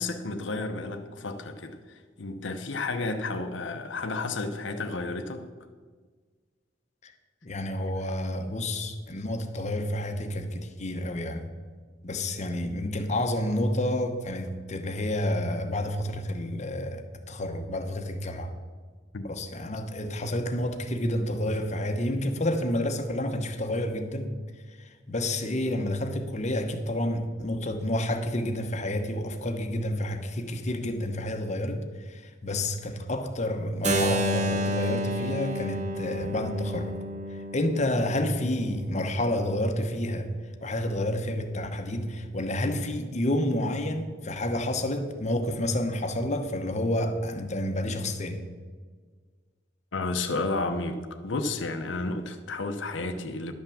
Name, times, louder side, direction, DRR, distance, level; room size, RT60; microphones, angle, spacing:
voice 1, 0.0-5.5 19.1-19.3 49.9-53.5, left 3 dB, 70° left, 6 dB, 0.8 m, -32 dB
voice 2, 7.4-11.5 12.0-18.5 19.2-24.3 24.7-37.0 37.3-40.3 40.6-48.4, left 1 dB, 40° left, 6 dB, 0.9 m, -29 dB
Keyboard (musical), 33.8-39.7, equal, 40° right, 0.9 m, -31 dB
11.0 x 5.9 x 7.0 m, 1.5 s
head